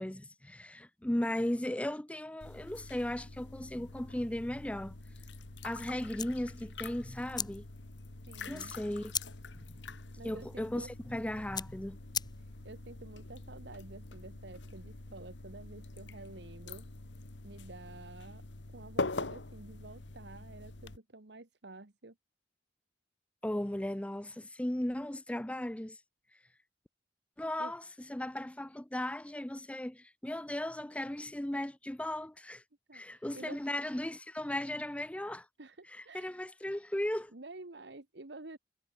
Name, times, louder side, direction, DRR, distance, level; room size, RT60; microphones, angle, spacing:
voice 1, 0.0-4.9 5.6-7.6 8.5-9.1 9.5-9.7 10.2-12.0 23.4-26.0 27.4-27.8 28.1-32.6 32.9-35.5 35.9-37.3, left 1 dB, 5° left, 0.5 m, -36 dB
sound 1, 2.4-21.0, left 3 dB, 80° left, 1.5 m, -44 dB
sound 2, 6.2-12.8, left 7 dB, 25° left, 2.9 m, -42 dB
voice 2, 8.3-8.8 9.8-9.9 10.2-10.9 12.4-16.9 17.4-18.4 18.7-22.1 27.6-27.7 32.9-33.6 35.6-36.4 37.3-38.6, right 2 dB, 65° right, 1.5 m, -50 dB
head